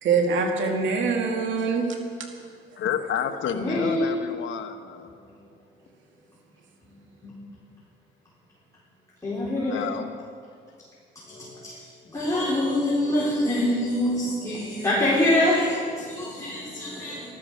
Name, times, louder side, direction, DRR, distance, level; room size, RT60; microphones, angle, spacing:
voice 1, 0.0-2.0, right 4 dB, 75° right, 2 dB, 2.3 m, -24 dB
voice 2, 2.8-5.1 9.6-10.1, left 8 dB, 70° left, 6 dB, 1.2 m, -30 dB
voice 3, 3.5-4.1 7.2-7.3 9.2-9.8 11.3-17.3, left 1 dB, 15° left, -7 dB, 4.2 m, -25 dB
14.5 x 12.5 x 6.5 m, 2.2 s
cardioid pair, 90°, 20 cm